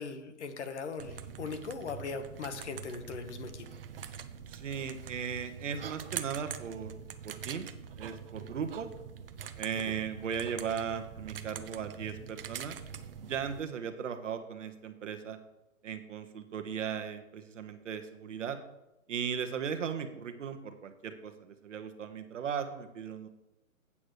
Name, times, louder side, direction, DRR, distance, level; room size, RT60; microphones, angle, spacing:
voice 1, 0.0-3.7, left 4 dB, 50° left, 8 dB, 1.2 m, -39 dB
sound 1, 1.0-13.6, right 8 dB, 40° right, 0.6 m, -44 dB
voice 2, 4.5-6.9 7.2-7.7 8.0-8.9 9.6-12.8 13.3-15.4 15.8-18.6 19.1-23.3, right 7 dB, 55° right, 7 dB, 1.1 m, -37 dB
8.6 x 5.0 x 6.5 m, 0.92 s
hypercardioid pair, 150°, 43 cm